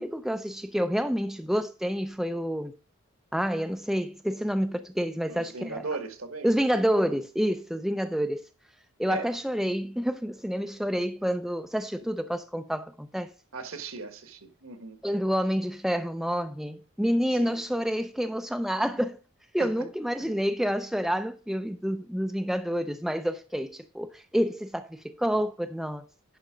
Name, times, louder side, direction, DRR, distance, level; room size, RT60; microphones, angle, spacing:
voice 1, 0.0-2.7 3.3-5.8 6.4-8.4 9.0-13.3 15.0-19.2 19.5-26.0, equal, ahead, 0.4 m, -28 dB
voice 2, 5.3-6.5 7.0-7.1 9.1-9.3 13.5-15.0 17.4-17.8 19.6-19.7, right 3 dB, 70° right, 1.5 m, -37 dB
10.5 x 5.4 x 5.0 m
head